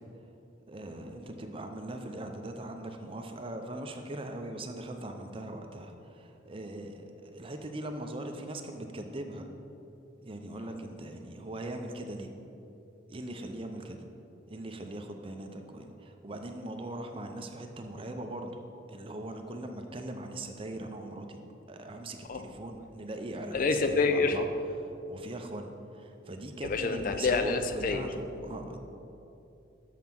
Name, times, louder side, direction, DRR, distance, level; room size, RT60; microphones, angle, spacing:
voice 1, 0.7-9.5 10.2-12.3 13.1-14.0 14.5-18.6 18.9-21.4 21.7-24.5 25.1-28.8, right 1 dB, 30° right, 5 dB, 0.6 m, -40 dB
voice 2, 23.5-24.4 26.6-28.1 28.5-28.6, left 4 dB, 45° left, 8 dB, 0.4 m, -27 dB
7.3 x 5.5 x 6.0 m, 2.8 s
head